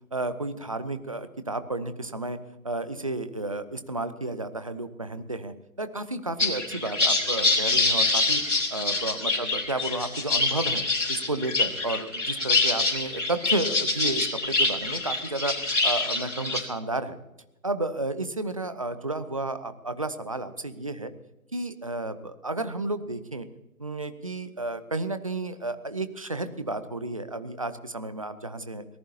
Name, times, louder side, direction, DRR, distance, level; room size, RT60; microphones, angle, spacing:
voice 1, 0.1-2.4 2.6-8.4 8.7-10.8 11.1-17.2 17.6-21.1 21.5-23.5 23.8-28.9, right 2 dB, 25° right, 11 dB, 0.7 m, -32 dB
sound 1, 6.4-16.6, left 3 dB, 60° left, 5.0 m, -25 dB
25.5 x 18.0 x 2.9 m, 0.93 s
figure-of-eight pair, 150°, 42 cm